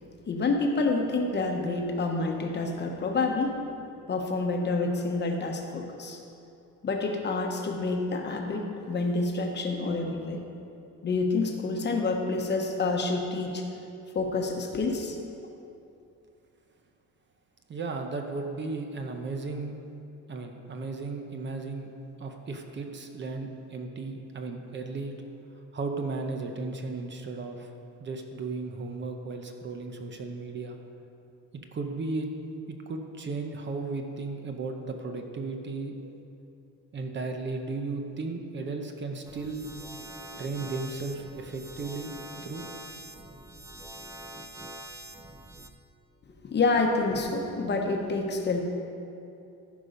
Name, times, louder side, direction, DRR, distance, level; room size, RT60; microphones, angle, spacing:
voice 1, 0.3-3.6 4.1-6.2 6.8-10.4 11.0-13.7 14.1-15.2 46.4-48.6, left 3 dB, 35° left, 2 dB, 1.0 m, -28 dB
voice 2, 17.7-19.8 20.3-21.9 22.2-25.2 25.7-27.7 28.0-30.8 31.7-32.3 32.9-36.1 36.9-39.7 40.4-42.1 42.4-42.6, right 3 dB, 35° right, 4 dB, 0.8 m, -35 dB
sound 1, 39.2-45.7, right 1 dB, 10° right, 0.4 m, -44 dB
14.0 x 5.4 x 5.1 m, 2.7 s
cardioid pair, 150°, 32 cm